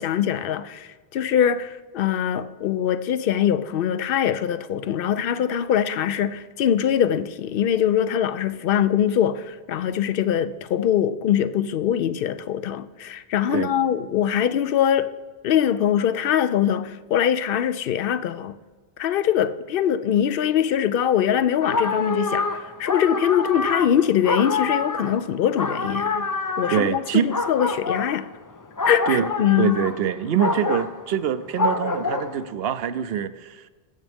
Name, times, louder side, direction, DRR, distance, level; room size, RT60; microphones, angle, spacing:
voice 1, 0.0-15.1 15.4-18.6 19.0-26.2 26.6-28.3 28.8-29.8, left 9 dB, 65° left, 0.7 m, -22 dB
sound 1, 21.6-32.5, left 3 dB, 30° left, 0.3 m, -27 dB
voice 2, 26.7-27.3 29.1-29.3 29.6-33.6, right 9 dB, 75° right, 0.8 m, -24 dB
21.0 x 7.3 x 3.5 m
omnidirectional pair, 1.0 m